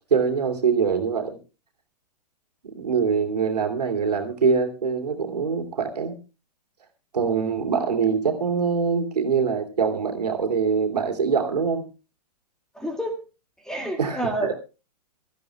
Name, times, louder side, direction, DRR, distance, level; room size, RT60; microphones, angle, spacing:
voice 1, 0.1-1.4 2.6-6.1 7.1-11.8 14.0-14.5, right 5 dB, 70° right, 4 dB, 2.9 m, -24 dB
voice 2, 12.7-13.2 13.6-14.5, right 1 dB, 5° left, 5 dB, 2.2 m, -28 dB
24.0 x 14.0 x 2.3 m, 0.30 s
figure-of-eight pair, 110°, 21 cm